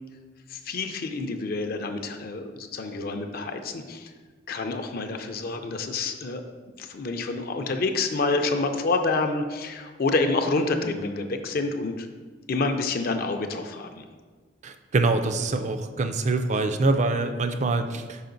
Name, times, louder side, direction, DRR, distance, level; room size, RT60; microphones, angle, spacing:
voice 1, 0.5-4.1 4.5-6.4 6.8-12.1 12.5-14.0, left 3 dB, 50° left, 6 dB, 0.5 m, -28 dB
voice 2, 14.6-18.2, right 3 dB, 40° right, 8 dB, 0.4 m, -25 dB
5.6 x 4.9 x 3.9 m, 1.5 s
head